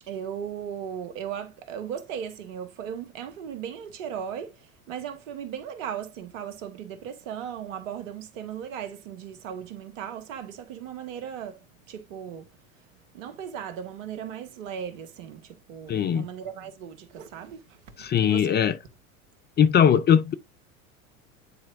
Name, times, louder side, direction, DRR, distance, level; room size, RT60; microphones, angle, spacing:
voice 1, 0.0-12.5 12.8-12.9 13.1-18.6, right 8 dB, 65° right, 1.7 m, -37 dB
voice 2, 15.9-16.3 18.0-18.7 19.6-20.3, left 8 dB, 25° left, 0.6 m, -20 dB
9.6 x 4.4 x 2.6 m
hypercardioid pair, 80°, 42 cm